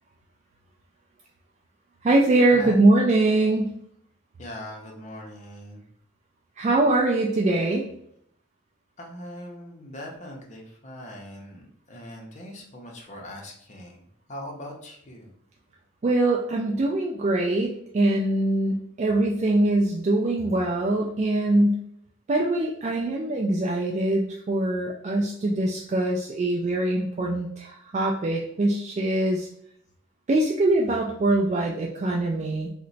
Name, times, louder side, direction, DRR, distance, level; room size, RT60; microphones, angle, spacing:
voice 1, 2.0-3.7 6.6-7.8 16.0-21.8 22.3-29.5 30.3-32.7, right 2 dB, 35° right, -1 dB, 0.3 m, -23 dB
voice 2, 4.4-5.9 9.0-15.3, left 1 dB, 35° left, 0 dB, 0.6 m, -41 dB
2.9 x 2.1 x 3.9 m, 0.69 s
head